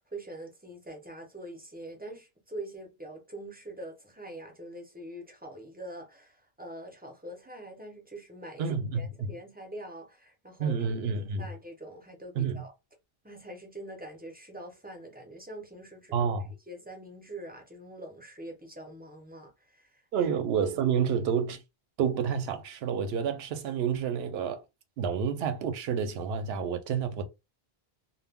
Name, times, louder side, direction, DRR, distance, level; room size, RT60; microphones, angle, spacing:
voice 1, 0.0-8.7 8.9-10.8 11.1-12.7 13.2-16.3 16.7-20.3, right 1 dB, 10° right, 0.5 m, -44 dB
voice 2, 8.6-9.3 10.6-11.5 12.4-12.6 16.1-16.5 20.1-21.6 22.0-24.6 25.0-27.2, right 7 dB, 80° right, 0.8 m, -29 dB
2.1 x 2.1 x 3.5 m
omnidirectional pair, 1.0 m